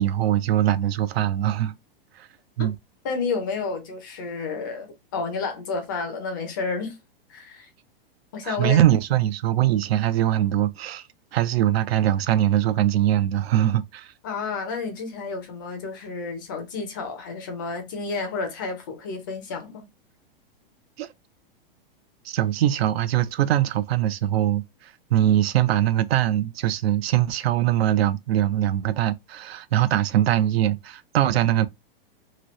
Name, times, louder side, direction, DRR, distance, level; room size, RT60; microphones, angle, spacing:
voice 1, 0.0-1.8 2.2-2.3 2.6-2.8 8.4-11.0 11.3-14.1 21.0-21.1 22.3-31.7, right 12 dB, 90° right, 0.5 m, -22 dB
voice 2, 3.0-7.0 7.3-7.7 8.3-8.8 14.2-19.9, left 4 dB, 20° left, 0.4 m, -31 dB
2.9 x 2.7 x 2.9 m
supercardioid pair, 175°, 30 cm